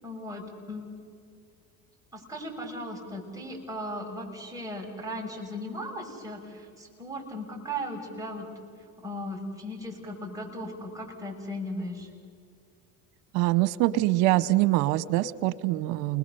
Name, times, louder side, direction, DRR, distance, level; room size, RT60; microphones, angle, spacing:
voice 1, 0.0-0.9 2.1-8.5 9.0-12.1, equal, 5° right, -1 dB, 6.7 m, -37 dB
voice 2, 13.3-16.2, right 17 dB, 70° right, 16 dB, 1.1 m, -24 dB
29.5 x 20.5 x 7.0 m, 2.3 s
supercardioid pair, 90°, 46 cm